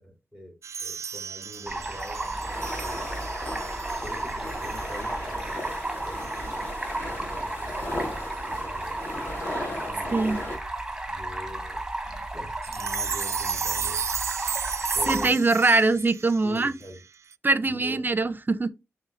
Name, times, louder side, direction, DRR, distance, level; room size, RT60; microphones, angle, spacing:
voice 1, 0.0-3.1 4.0-5.7 6.0-6.8 7.0-9.0 9.9-10.6 11.1-14.3 14.9-15.4 16.4-17.0 17.6-18.0, equal, 20° left, 2.5 m, -44 dB
sound 1, 0.6-5.1 5.4-5.6 6.2-6.4 7.7-7.8 8.3-8.4 9.7-9.8 12.6-17.3, right 6 dB, 60° right, 0.3 m, -35 dB
sound 2, 1.6-10.6, left 1 dB, 35° left, 2.5 m, -37 dB
Stream, 1.7-15.3, right 2 dB, 10° right, 1.4 m, -33 dB
voice 2, 15.1-16.7 17.4-18.7, right 3 dB, 35° right, 0.7 m, -22 dB
5.5 x 3.4 x 5.3 m
cardioid pair, 60°, 6 cm